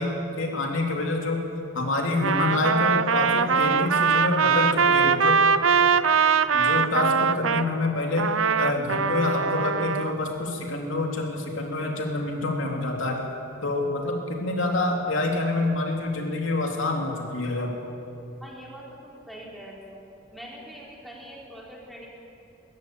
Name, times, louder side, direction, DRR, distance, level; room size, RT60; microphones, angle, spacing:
voice 1, 0.0-1.4 1.7-5.4 6.5-13.2 13.6-17.8, left 2 dB, 75° left, 1 dB, 3.1 m, -27 dB
Trumpet, 2.1-7.7 8.2-10.1, right 6 dB, 85° right, 0.7 m, -22 dB
voice 2, 18.4-20.0 20.3-22.1, equal, ahead, -4 dB, 3.8 m, -43 dB
22.5 x 15.0 x 9.3 m, 2.8 s
head